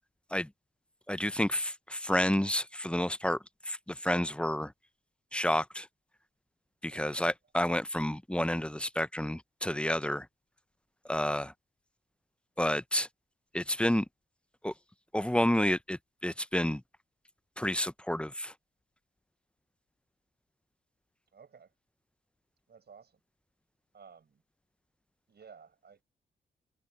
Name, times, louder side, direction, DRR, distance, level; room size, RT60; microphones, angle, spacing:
voice 1, 1.1-3.4 3.7-4.7 5.3-5.9 6.8-10.3 11.0-11.5 12.6-13.1 13.5-14.0 14.6-14.7 15.1-16.8 17.6-18.5, left 1 dB, 5° left, 0.8 m, -30 dB
voice 2, 21.3-21.7 22.7-23.2 23.9-24.4 25.3-26.0, right 6 dB, 55° right, 6.8 m, -55 dB
hypercardioid pair, 40°, 20 cm